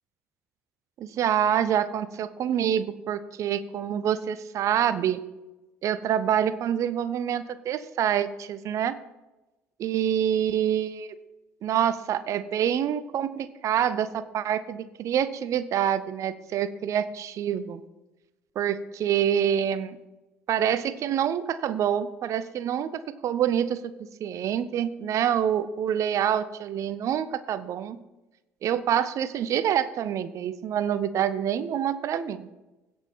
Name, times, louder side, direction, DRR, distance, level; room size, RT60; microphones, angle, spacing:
voice 1, 1.0-5.2 5.8-9.0 9.8-11.1 11.6-17.8 18.6-20.0 20.5-23.9 24.2-28.0 28.6-32.5, right 9 dB, 50° right, 15 dB, 0.6 m, -26 dB
16.5 x 5.6 x 4.3 m, 1.0 s
figure-of-eight pair, 55°, 7 cm